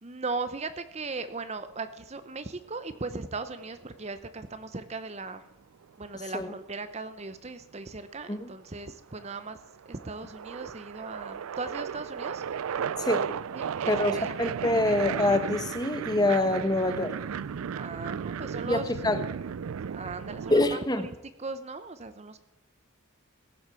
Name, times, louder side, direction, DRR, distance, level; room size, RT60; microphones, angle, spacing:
voice 1, 0.0-5.4 6.0-9.6 9.9-12.4 13.5-14.4 17.7-18.9 19.9-22.4, right 3 dB, 30° right, 11 dB, 0.7 m, -38 dB
sound 1, 2.8-4.0 5.8-7.1 8.0-8.5 8.8-20.8, right 7 dB, 80° right, 0.4 m, -35 dB
voice 2, 13.9-17.1 18.7-19.2 20.5-21.0, left 2 dB, 20° left, 9 dB, 1.0 m, -25 dB
16.5 x 7.9 x 7.0 m, 0.91 s
head